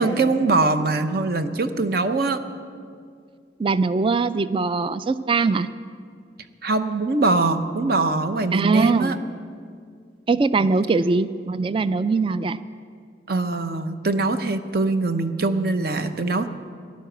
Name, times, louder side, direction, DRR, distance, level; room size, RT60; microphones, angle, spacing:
voice 1, 0.0-2.4 6.6-9.2 13.3-16.5, right 3 dB, 55° right, 9 dB, 0.8 m, -22 dB
voice 2, 3.6-5.7 8.5-9.2 10.3-12.6, right 4 dB, 30° right, 14 dB, 0.3 m, -21 dB
14.0 x 11.5 x 7.9 m, 2.2 s
head